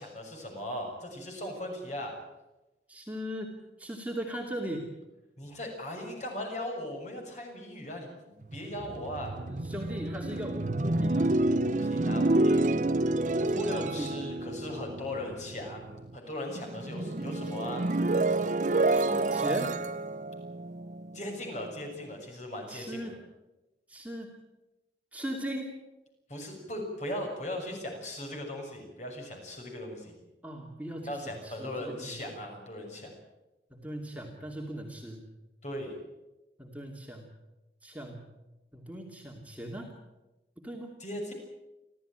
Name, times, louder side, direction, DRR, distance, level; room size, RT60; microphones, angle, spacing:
voice 1, 0.0-2.2 5.4-9.3 11.6-12.7 13.6-17.8 21.1-23.1 26.3-30.2 31.0-33.1 35.6-36.0 41.0-41.3, left 1 dB, 40° left, 2 dB, 6.6 m, -38 dB
voice 2, 2.9-4.9 9.5-11.4 13.4-14.1 17.0-17.7 18.9-19.8 22.7-23.2 23.9-24.3 25.1-25.7 30.4-32.4 33.7-35.2 36.6-37.3 37.8-38.3 38.7-39.9 40.6-41.0, equal, 10° right, 0 dB, 2.6 m, -39 dB
sound 1, 8.4-16.2 16.5-21.6, right 2 dB, 45° right, 0.7 m, -29 dB
30.0 x 13.5 x 9.0 m, 1.0 s
head